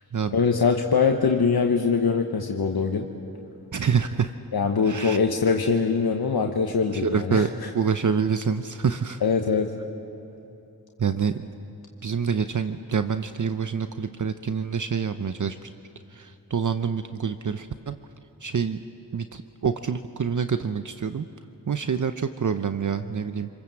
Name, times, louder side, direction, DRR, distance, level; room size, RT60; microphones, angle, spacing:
voice 1, 0.3-3.1 4.5-7.7 9.2-9.7, left 5 dB, 75° left, 3 dB, 1.2 m, -23 dB
voice 2, 3.7-4.3 4.8-5.2 6.9-7.5 7.7-9.2 11.0-11.5 12.0-15.7 16.1-18.0 18.4-18.8 19.1-21.3 21.7-23.5, right 6 dB, 55° right, 9 dB, 0.8 m, -26 dB
27.0 x 20.5 x 7.6 m, 2.9 s
cardioid pair, 50°, 37 cm